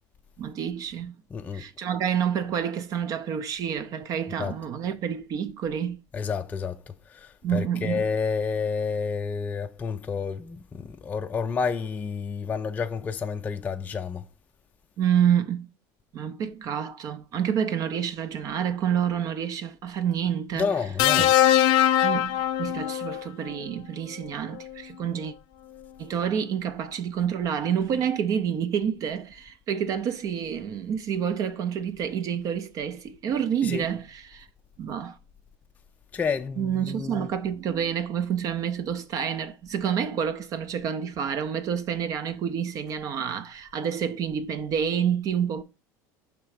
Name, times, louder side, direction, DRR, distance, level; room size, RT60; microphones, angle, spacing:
voice 1, 0.4-1.1 1.5-6.0 7.4-8.0 15.0-15.7 16.1-20.8 21.2-21.3 22.0-25.3 26.0-34.5 34.8-35.2 36.6-45.6, right 8 dB, 40° right, 0.5 m, -28 dB
voice 2, 1.3-1.7 4.4-4.5 6.1-6.8 7.1-14.2 20.5-21.3 33.6-33.9 36.1-37.3, left 5 dB, 15° left, 0.4 m, -30 dB
sound 1, 21.0-23.3 24.6-24.8, left 11 dB, 75° left, 0.6 m, -21 dB
5.9 x 3.3 x 4.8 m
cardioid pair, 145°, 9 cm